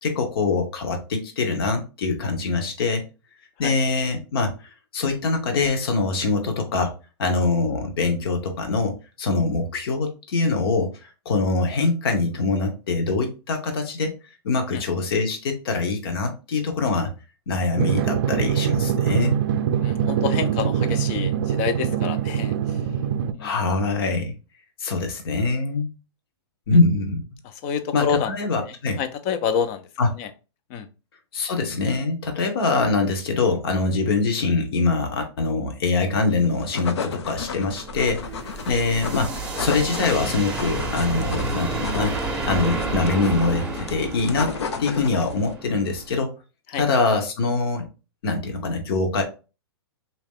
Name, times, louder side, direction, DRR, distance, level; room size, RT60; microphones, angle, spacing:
voice 1, 0.0-3.0 3.6-4.5 4.9-6.9 7.2-10.9 11.2-14.1 14.4-17.1 17.5-19.4 23.4-24.3 24.8-25.9 26.7-27.2 27.9-29.0 30.0-30.1 31.3-38.2 38.7-42.1 42.4-44.5 44.8-46.3 46.8-47.9 48.2-49.2, left 3 dB, 60° left, 5 dB, 1.1 m, -23 dB
Drum, 17.8-23.3, right 9 dB, 50° right, 0.4 m, -23 dB
voice 2, 19.8-22.8 23.3-23.6 27.4-28.3 29.0-29.9 30.2-30.3 30.7-30.9 38.6-38.8 46.7-46.8, left 7 dB, 30° left, 10 dB, 0.4 m, -28 dB
sound 1, 36.4-45.5, left 5 dB, 85° left, 0.6 m, -34 dB
sound 2, 37.2-46.2, right 3 dB, 5° right, 0.7 m, -31 dB
3.2 x 2.9 x 3.5 m, 0.32 s
hypercardioid pair, 160°, 14 cm